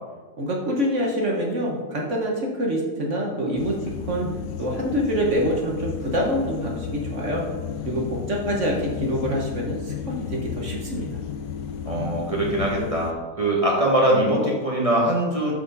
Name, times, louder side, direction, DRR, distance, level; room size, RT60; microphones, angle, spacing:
voice 1, 0.4-4.3 4.6-7.4 7.8-11.1, equal, 45° right, -1 dB, 1.3 m, -26 dB
sound 1, 3.6-13.1, left 8 dB, 80° left, 1.3 m, -33 dB
voice 2, 11.8-15.5, right 1 dB, 20° right, -3 dB, 1.4 m, -22 dB
11.5 x 4.4 x 4.0 m, 1.3 s
omnidirectional pair, 1.9 m